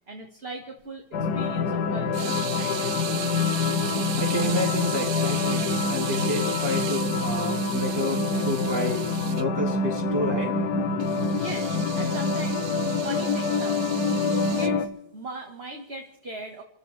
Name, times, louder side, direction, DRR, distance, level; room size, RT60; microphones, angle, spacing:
voice 1, 0.1-1.0 1.3-3.3 11.3-14.0 14.3-16.6, right 2 dB, 35° right, 2 dB, 1.9 m, -39 dB
sound 1, 1.1-14.9, left 4 dB, 65° left, 1.5 m, -26 dB
sound 2, 2.1-9.4 11.0-14.7, right 11 dB, 75° right, 1.3 m, -37 dB
voice 2, 4.2-9.0 9.3-10.5, equal, 15° right, -2 dB, 3.7 m, -29 dB
29.0 x 13.5 x 3.4 m, 0.78 s
omnidirectional pair, 1.8 m